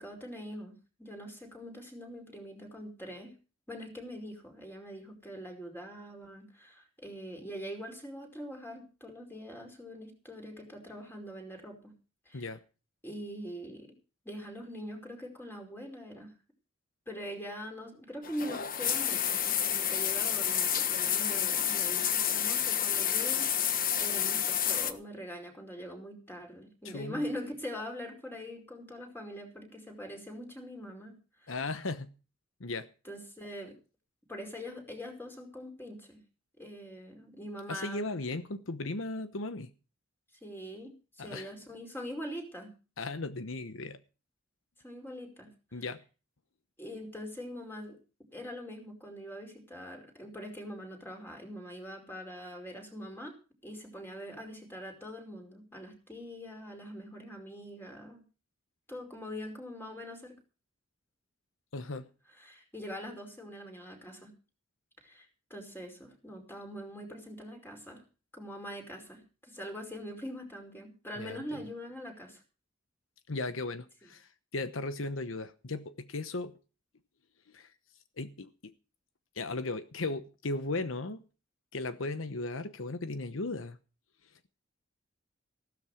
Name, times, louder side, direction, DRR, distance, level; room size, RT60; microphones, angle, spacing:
voice 1, 0.0-3.3 3.7-11.9 12.2-12.4 13.0-13.9 14.2-16.3 17.1-31.5 33.0-33.7 34.3-36.2 36.6-38.2 40.4-42.7 44.8-45.5 46.8-48.0 48.3-53.4 53.6-58.2 58.9-60.4 61.9-62.0 62.4-64.3 65.0-68.0 68.3-72.4, equal, 10° left, 5.0 m, -43 dB
sound 1, 18.2-24.9, left 9 dB, 45° left, 1.3 m, -29 dB
voice 2, 26.8-27.2 31.5-32.1 32.6-32.9 37.7-39.7 41.2-41.5 43.0-44.0 45.7-46.0 61.7-62.1 71.2-71.6 73.3-76.6 77.5-77.7 78.2-78.7 79.3-81.2 81.7-83.8, left 2 dB, 80° left, 1.0 m, -36 dB
15.5 x 13.0 x 4.9 m
head